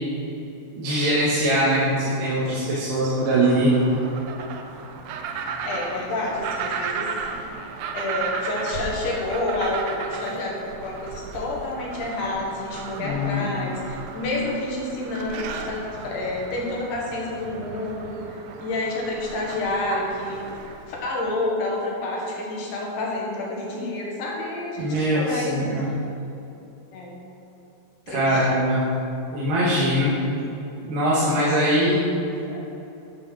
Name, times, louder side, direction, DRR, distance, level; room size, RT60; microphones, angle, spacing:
voice 1, 0.7-3.7 13.0-13.6 24.8-25.8 28.1-28.8 29.3-30.1 30.8-32.0 32.5-32.6, equal, 65° right, -9 dB, 3.0 m, -22 dB
sound 1, 3.2-20.9, right 5 dB, 85° right, 2.7 m, -35 dB
voice 2, 5.6-7.5 7.9-20.4 20.9-25.6 26.9-27.2 28.1-28.5, left 2 dB, 60° left, -3 dB, 2.9 m, -29 dB
10.5 x 5.6 x 6.1 m, 2.9 s
omnidirectional pair, 4.4 m